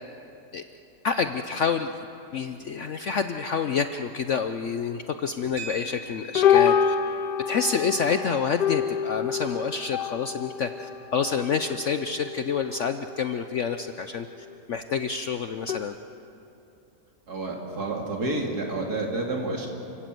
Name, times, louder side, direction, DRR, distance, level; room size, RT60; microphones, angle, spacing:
voice 1, 1.0-2.1 2.3-6.9 7.5-16.0, left 6 dB, 60° left, 8 dB, 0.8 m, -28 dB
sound 1, 5.4-5.5 6.3-13.2 13.6-14.0 14.4-14.5 15.7-15.8, left 8 dB, 75° left, 1.4 m, -27 dB
sound 2, 5.6-14.0, equal, 40° right, 2.1 m, -47 dB
voice 2, 17.3-19.7, right 2 dB, 60° right, 0 dB, 3.4 m, -29 dB
29.0 x 17.5 x 7.7 m, 2.8 s
omnidirectional pair, 1.8 m